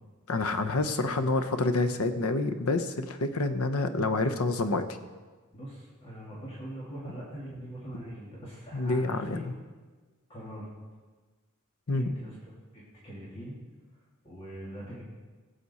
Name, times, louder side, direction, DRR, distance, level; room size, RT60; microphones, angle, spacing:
voice 1, 0.3-4.9 8.7-9.5 11.9-12.1, left 2 dB, 80° left, 9 dB, 0.9 m, -28 dB
voice 2, 5.5-9.4 10.3-10.7 11.9-12.4 12.7-13.6 14.2-15.0, right 1 dB, 25° left, -6 dB, 2.2 m, -42 dB
17.5 x 7.6 x 4.2 m, 1.3 s
head